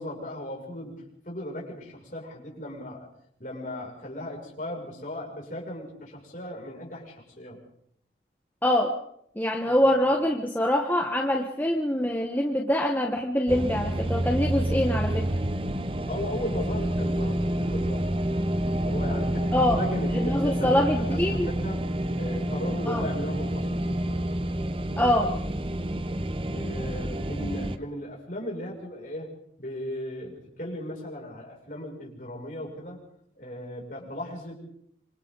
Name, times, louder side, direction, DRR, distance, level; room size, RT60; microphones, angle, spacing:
voice 1, 0.0-3.1 3.4-7.6 9.6-9.8 16.1-18.1 18.8-21.9 22.1-24.0 26.5-29.3 29.6-33.0 33.4-34.5, left 1 dB, 45° left, -2 dB, 6.9 m, -37 dB
voice 2, 8.6-9.0 9.4-15.3 19.5-19.8 20.2-21.5 22.9-23.0 25.0-25.3, left 1 dB, 10° left, 1 dB, 1.4 m, -24 dB
sound 1, 13.5-27.8, right 1 dB, 30° right, 0.8 m, -28 dB
27.0 x 25.5 x 4.1 m, 0.68 s
head